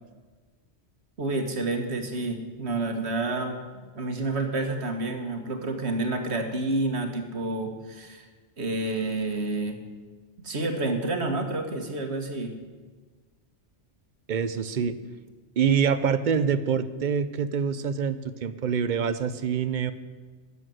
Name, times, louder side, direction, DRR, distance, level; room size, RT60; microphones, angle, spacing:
voice 1, 1.2-3.5 3.9-8.2 8.6-9.9 10.4-12.5, right 2 dB, 65° right, 4 dB, 1.8 m, -29 dB
voice 2, 14.3-15.0 15.6-19.9, right 7 dB, 50° right, 13 dB, 0.7 m, -25 dB
12.5 x 7.0 x 9.2 m, 1.4 s
omnidirectional pair, 1.2 m